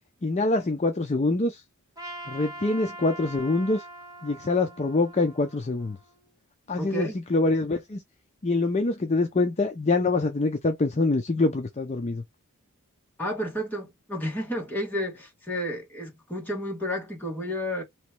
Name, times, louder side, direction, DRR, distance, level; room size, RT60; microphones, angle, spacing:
voice 1, 0.2-1.6 2.3-3.8 4.2-6.0 6.7-8.0 8.4-12.2, left 3 dB, 30° left, 0.5 m, -25 dB
Trumpet, 2.0-6.3, right 1 dB, 15° right, 1.5 m, -43 dB
voice 2, 6.8-7.1 13.2-17.8, equal, 10° left, 1.7 m, -31 dB
3.1 x 3.0 x 4.5 m
head